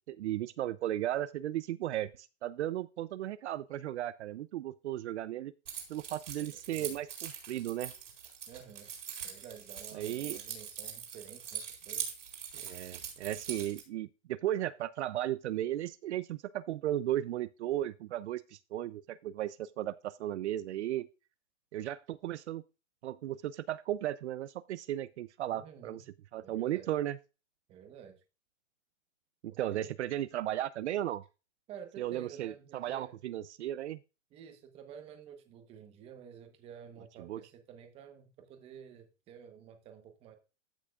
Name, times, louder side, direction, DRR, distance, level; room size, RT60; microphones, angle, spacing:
voice 1, 0.1-5.5 5.9-7.9 9.9-10.4 12.5-21.1 21.7-22.6 23.0-26.0 26.3-27.2 29.4-31.2 32.0-34.0 37.2-37.4, right 13 dB, 70° right, 0.5 m, -35 dB
Keys jangling, 5.7-13.8, right 8 dB, 85° right, 4.1 m, -42 dB
voice 2, 6.4-6.9 8.5-8.9 9.2-12.1 25.5-26.0 26.4-26.9 27.7-28.2 29.5-30.0 31.7-33.2 34.3-40.4, right 8 dB, 15° right, 1.0 m, -51 dB
14.5 x 6.1 x 2.3 m
hypercardioid pair, 165°, 36 cm